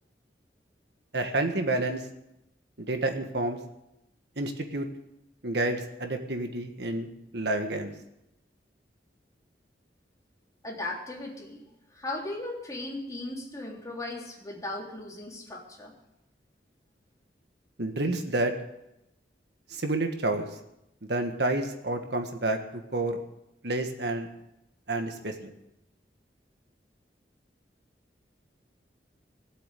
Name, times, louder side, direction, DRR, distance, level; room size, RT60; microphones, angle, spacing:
voice 1, 1.1-2.0 2.8-3.6 4.4-4.9 5.4-7.9 17.8-18.5 19.7-20.5 21.1-23.2 23.6-24.3 24.9-25.5, right 2 dB, 70° right, 5 dB, 1.6 m, -29 dB
voice 2, 10.6-11.6 12.0-15.9, left 2 dB, 20° left, -2 dB, 3.5 m, -37 dB
18.5 x 8.2 x 8.3 m, 0.86 s
head